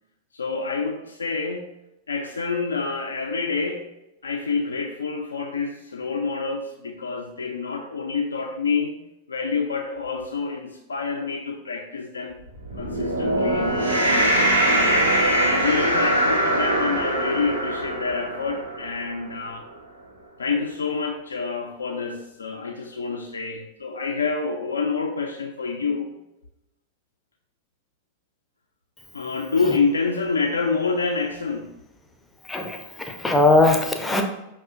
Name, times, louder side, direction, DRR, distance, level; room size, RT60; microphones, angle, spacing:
voice 1, 0.3-1.7 2.1-3.9 4.2-9.0 9.3-12.4 12.7-15.1 15.5-19.7 20.4-26.1 29.1-31.7, left 4 dB, 75° left, 2 dB, 0.3 m, -27 dB
sound 1, 12.6-19.1, right 1 dB, 80° right, 1.0 m, -22 dB
voice 2, 32.5-34.2, left 2 dB, 10° left, 4 dB, 0.4 m, -20 dB
5.4 x 2.4 x 2.4 m, 0.89 s
figure-of-eight pair, 90°, 0 cm